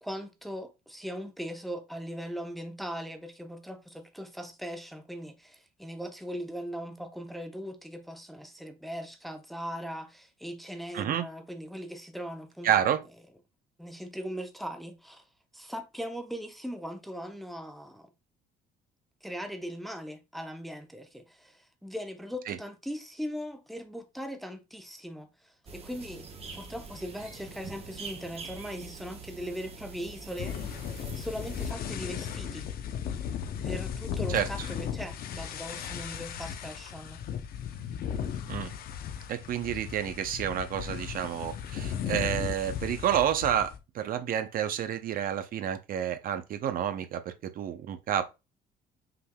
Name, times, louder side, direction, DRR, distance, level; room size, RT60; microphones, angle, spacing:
voice 1, 0.0-12.7 13.8-15.2 15.5-18.1 19.2-26.3 26.5-32.7 33.6-37.2, equal, ahead, 0.7 m, -39 dB
voice 2, 10.9-11.3 12.6-13.0 22.5-22.6 34.3-34.5 38.5-38.7 39.3-48.3, right 10 dB, 60° right, 0.6 m, -29 dB
sound 1, 25.7-31.7, right 4 dB, 35° right, 1.0 m, -44 dB
sound 2, 30.4-43.8, left 8 dB, 60° left, 0.6 m, -36 dB
5.7 x 3.4 x 2.2 m
cardioid pair, 110°, 17 cm